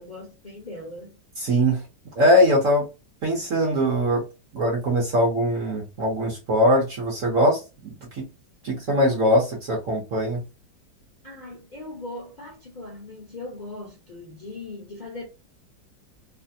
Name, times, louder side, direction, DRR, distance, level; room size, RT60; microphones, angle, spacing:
voice 1, 0.0-1.2 11.2-15.3, left 2 dB, 30° left, 0.9 m, -39 dB
voice 2, 1.4-1.8 2.2-2.8 3.2-4.2 4.5-8.3 8.6-10.4, equal, 50° right, 1.2 m, -21 dB
3.3 x 2.1 x 2.7 m
omnidirectional pair, 2.0 m